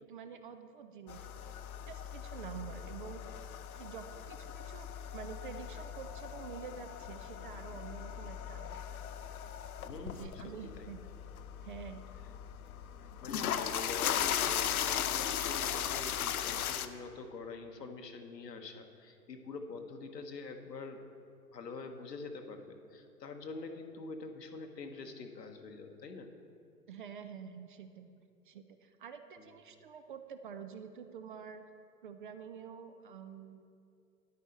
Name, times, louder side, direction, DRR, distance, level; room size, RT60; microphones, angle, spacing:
voice 1, 0.1-1.6 1.9-3.2 3.8-9.0 10.0-11.0 11.6-12.0 26.9-28.1 28.5-31.6 32.0-33.6, right 7 dB, 35° right, 8 dB, 0.4 m, -48 dB
sound 1, 1.1-16.9, left 9 dB, 60° left, 0.6 m, -38 dB
voice 2, 9.8-10.9 13.0-21.0 21.5-26.3 29.4-29.5, left 4 dB, 80° left, 6 dB, 1.1 m, -45 dB
10.0 x 8.2 x 4.3 m, 2.5 s
figure-of-eight pair, 110°, 48 cm